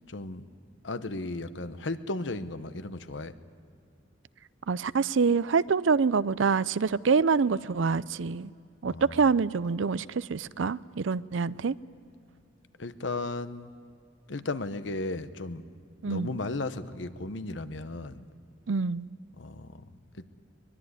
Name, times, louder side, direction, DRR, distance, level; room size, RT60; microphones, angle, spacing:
voice 1, 0.1-0.4 0.8-3.4 8.9-9.3 12.8-13.7 14.3-15.6 16.1-18.3 19.4-19.8, left 2 dB, 75° left, 1.0 m, -35 dB
voice 2, 4.7-8.5 8.8-11.8 16.0-16.3 18.7-19.1, right 5 dB, 85° right, 0.5 m, -26 dB
23.5 x 21.0 x 9.7 m
head